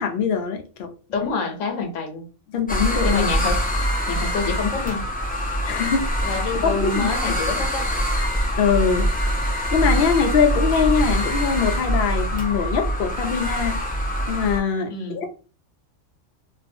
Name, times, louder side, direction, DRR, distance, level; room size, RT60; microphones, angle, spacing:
voice 1, 0.0-0.9 2.5-3.3 5.6-6.3 6.6-7.1 8.6-9.1 9.7-13.8 14.3-15.3, left 6 dB, 60° left, 0.7 m, -22 dB
voice 2, 1.1-2.3 3.0-3.6 4.1-5.1 6.2-7.9 14.9-15.2, left 4 dB, 85° left, 1.1 m, -27 dB
sound 1, 2.7-14.6, equal, 15° left, 0.3 m, -24 dB
2.6 x 2.3 x 2.5 m
omnidirectional pair, 1.3 m